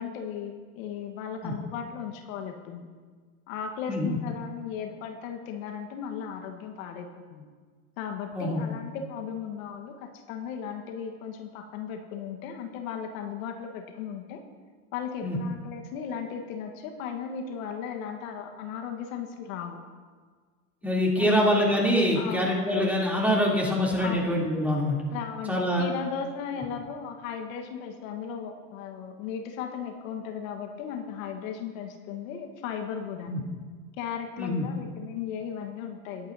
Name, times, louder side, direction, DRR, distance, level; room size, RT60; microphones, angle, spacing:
voice 1, 0.0-2.9 3.5-7.5 8.0-14.4 14.9-19.8 21.2-21.4 22.1-22.5 24.0-24.3 25.1-33.4 34.0-36.3, left 7 dB, 65° left, 4 dB, 1.4 m, -36 dB
voice 2, 20.8-24.9 25.5-25.9 33.3-33.4 34.4-34.7, equal, 5° right, -4 dB, 3.1 m, -25 dB
19.5 x 8.8 x 2.7 m, 1.5 s
hypercardioid pair, 105°, 44 cm